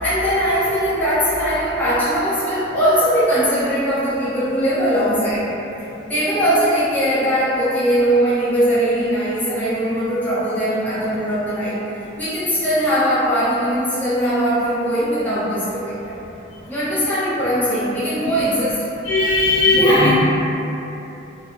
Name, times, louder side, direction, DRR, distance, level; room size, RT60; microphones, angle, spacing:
voice 1, 0.0-5.5 6.1-11.8 12.2-16.2 16.7-18.8 19.7-20.0, equal, 10° left, -12 dB, 0.5 m, -20 dB
voice 2, 19.0-20.2, left 2 dB, 70° left, -11 dB, 1.0 m, -16 dB
2.8 x 2.2 x 2.4 m, 3.0 s
head